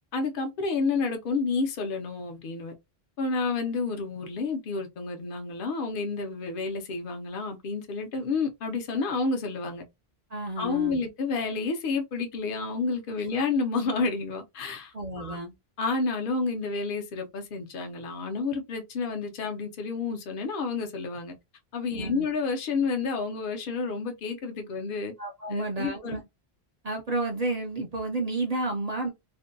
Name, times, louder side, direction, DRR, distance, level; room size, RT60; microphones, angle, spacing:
voice 1, 0.1-2.7 3.2-9.8 10.6-15.4 15.8-21.3 21.7-25.1 25.5-26.2, left 4 dB, 60° left, 0.8 m, -30 dB
voice 2, 10.3-11.0 14.9-15.5 21.9-22.3 25.2-26.2 26.8-29.1, right 2 dB, 50° right, 0.5 m, -31 dB
2.6 x 2.1 x 2.5 m
omnidirectional pair, 1.1 m